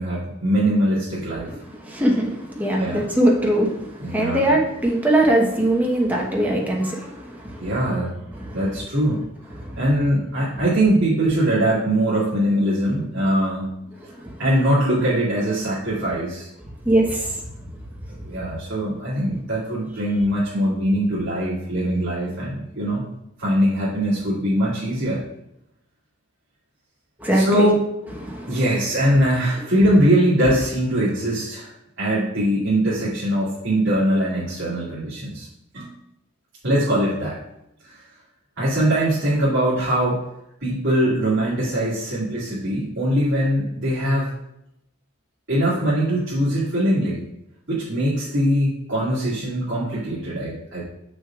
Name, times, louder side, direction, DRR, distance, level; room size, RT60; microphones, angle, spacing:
voice 1, 0.0-1.6 2.8-3.1 4.0-4.6 7.6-8.2 8.5-9.2 9.8-13.7 14.4-16.5 18.2-23.1 23.4-25.2 27.3-27.9 28.5-31.7 32.0-35.5 35.7-35.9 36.6-37.4 37.8-38.0 38.6-40.2 40.6-44.3 45.5-47.2 47.7-50.8, right 1 dB, 65° right, -11 dB, 2.3 m, -22 dB
voice 2, 1.8-7.7 8.4-8.6 9.6-9.8 14.1-14.3 16.8-17.3 27.2-27.7 28.2-28.6, right 1 dB, 10° right, -2 dB, 1.1 m, -21 dB
7.4 x 6.4 x 2.4 m, 0.83 s
head